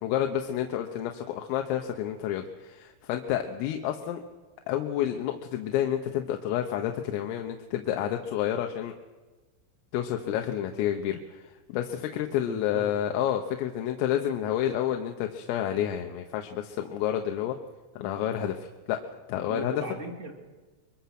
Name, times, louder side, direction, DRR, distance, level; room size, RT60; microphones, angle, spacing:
voice 1, 0.0-4.2 4.7-8.9 9.9-17.6 18.0-19.0 19.3-19.8, left 11 dB, 90° left, 4 dB, 3.8 m, -29 dB
voice 2, 12.4-12.9 19.5-20.3, right 2 dB, 20° right, 2 dB, 2.1 m, -37 dB
24.5 x 23.0 x 6.0 m, 1.3 s
omnidirectional pair, 5.8 m